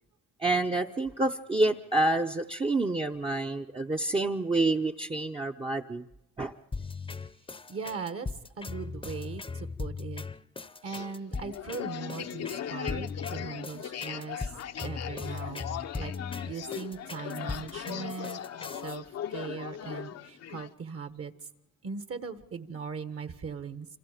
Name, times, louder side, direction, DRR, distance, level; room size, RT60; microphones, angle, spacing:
voice 1, 0.4-6.0 6.4-6.5, right 2 dB, 20° right, 1 dB, 0.8 m, -28 dB
sound 1, 6.7-19.0, left 4 dB, 15° left, 0.8 m, -39 dB
voice 2, 7.7-8.3 8.6-10.2 10.8-14.5 14.8-16.1 16.4-18.4 18.8-19.0 19.3-21.3 21.8-23.9, right 5 dB, 50° right, 10 dB, 1.4 m, -39 dB
sound 2, 10.9-20.7, left 10 dB, 55° left, 0.8 m, -39 dB
27.5 x 25.5 x 5.1 m, 0.87 s
cardioid pair, 90°, 30 cm